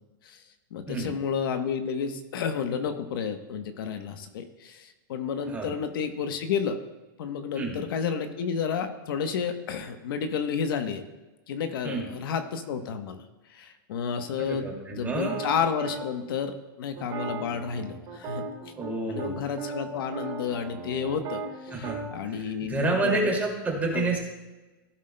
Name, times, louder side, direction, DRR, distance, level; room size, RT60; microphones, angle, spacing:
voice 1, 0.7-6.8 7.2-11.0 11.5-13.2 13.5-18.7 19.1-23.3 23.9-24.1, left 6 dB, 70° left, 8 dB, 1.0 m, -31 dB
voice 2, 14.4-15.3 18.8-19.4 21.7-24.2, right 3 dB, 15° right, -1 dB, 2.3 m, -29 dB
sound 1, 15.3-16.0 17.0-18.9 19.2-19.3 19.6-22.1, right 4 dB, 35° right, 2.2 m, -37 dB
15.5 x 7.4 x 2.2 m, 1.1 s
supercardioid pair, 150°, 12 cm